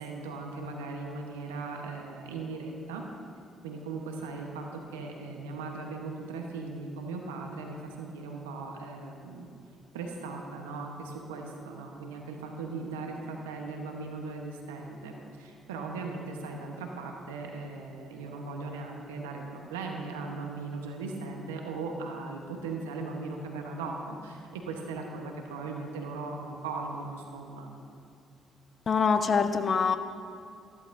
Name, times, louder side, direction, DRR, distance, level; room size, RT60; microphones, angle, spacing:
voice 1, 0.0-3.0 3.6-9.5 9.9-27.7, right 3 dB, 90° right, 2 dB, 0.9 m, -38 dB
voice 2, 28.9-30.0, left 5 dB, 45° left, 9 dB, 0.7 m, -24 dB
14.5 x 12.0 x 2.6 m, 2.5 s
hypercardioid pair, 50°, 0 cm